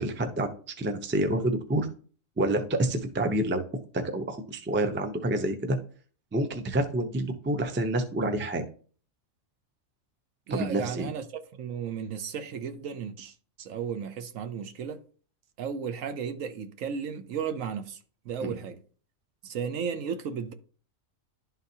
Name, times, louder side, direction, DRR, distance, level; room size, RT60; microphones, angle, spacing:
voice 1, 0.0-1.9 2.4-3.6 4.1-5.8 6.3-8.6 10.5-11.1 18.4-18.6, right 1 dB, 15° right, 0.4 m, -28 dB
voice 2, 10.5-15.0 15.6-18.0 18.2-18.8 19.4-20.5, right 7 dB, 70° right, 1.1 m, -34 dB
11.5 x 4.0 x 2.7 m
omnidirectional pair, 1.4 m